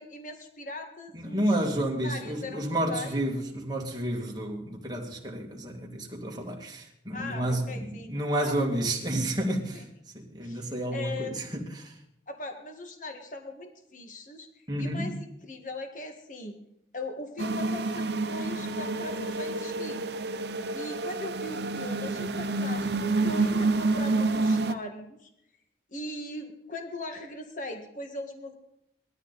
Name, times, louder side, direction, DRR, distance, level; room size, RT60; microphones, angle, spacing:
voice 1, 0.0-3.2 7.1-8.8 9.7-9.8 10.4-11.4 12.3-16.6 16.9-20.1 20.7-25.3 25.9-28.5, left 2 dB, 45° left, 1.7 m, -40 dB
voice 2, 1.1-9.9 10.1-11.9 14.7-15.1, right 1 dB, 20° right, 2.3 m, -30 dB
sound 1, 17.4-24.7, right 3 dB, 65° right, 0.8 m, -28 dB
19.5 x 13.0 x 4.1 m
head